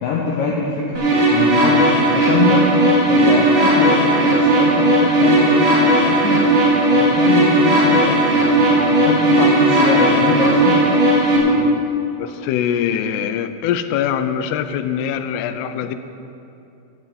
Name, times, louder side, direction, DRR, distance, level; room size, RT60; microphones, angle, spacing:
voice 1, 0.0-1.0 1.3-2.6 3.1-6.4 6.9-10.8, left 4 dB, 70° left, -3 dB, 2.4 m, -23 dB
sound 1, 0.9-11.4, right 1 dB, 40° right, 3.0 m, -15 dB
voice 2, 12.2-16.0, left 9 dB, 85° left, 10 dB, 2.6 m, -23 dB
13.5 x 6.1 x 8.1 m, 2.8 s
omnidirectional pair, 4.5 m